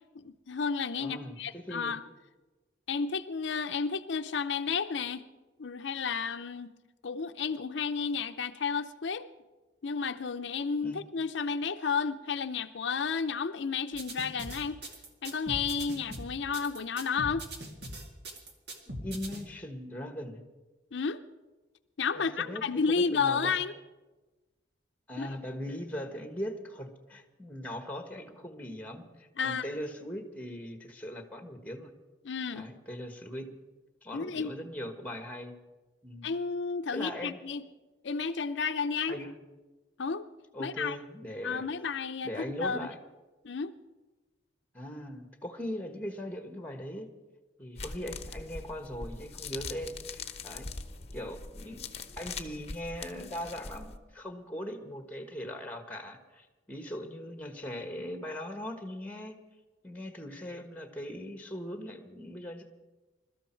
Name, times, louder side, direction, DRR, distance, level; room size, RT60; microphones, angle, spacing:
voice 1, 0.1-2.0 2.9-5.2 5.6-6.7 7.0-9.3 9.8-14.8 15.2-17.5 20.9-21.2 22.0-23.7 25.2-25.3 29.4-29.7 32.2-32.7 34.1-34.5 36.2-37.6 38.0-39.2 40.0-40.3 40.6-41.0 41.4-42.9 43.4-43.7, left 5 dB, 75° left, 8 dB, 0.6 m, -32 dB
voice 2, 1.0-1.9 10.8-11.0 19.0-20.4 22.1-23.6 25.1-31.9 32.5-33.5 34.0-35.5 36.0-36.3 36.9-37.4 39.1-39.3 40.5-41.7 42.2-43.0 44.7-47.1 47.6-50.7 51.1-59.4 59.8-62.6, equal, 10° left, 6 dB, 1.4 m, -40 dB
sound 1, 13.9-19.4, right 1 dB, 60° right, 2.1 m, -41 dB
sound 2, 47.8-54.0, left 4 dB, 35° left, 0.9 m, -42 dB
22.0 x 13.0 x 4.5 m, 1.2 s
head